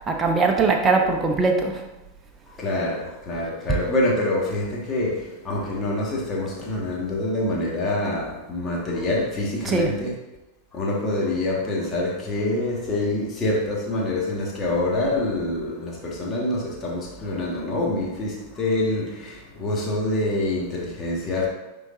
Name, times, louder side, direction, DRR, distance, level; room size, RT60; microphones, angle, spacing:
voice 1, 0.1-1.8 9.6-9.9, right 4 dB, 20° right, 0.9 m, -21 dB
voice 2, 2.6-10.1 10.7-21.5, left 1 dB, 20° left, 1.7 m, -26 dB
9.6 x 3.9 x 2.7 m
figure-of-eight pair, 90°, 0 cm